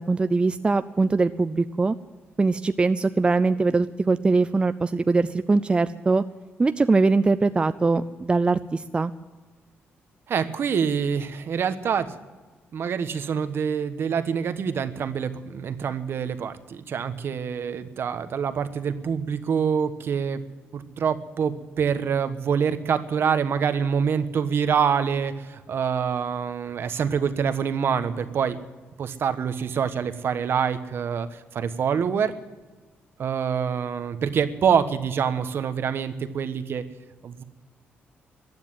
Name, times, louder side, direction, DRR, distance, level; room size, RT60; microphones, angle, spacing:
voice 1, 0.0-1.9 2.4-6.2 6.6-9.1, right 3 dB, 25° right, 11 dB, 0.5 m, -22 dB
voice 2, 10.3-12.1 12.7-20.4 20.7-28.6 29.0-32.3 33.2-36.8 37.2-37.4, right 7 dB, 60° right, 10 dB, 1.2 m, -26 dB
15.0 x 9.6 x 9.6 m, 1.3 s
cardioid pair, 95°, 4 cm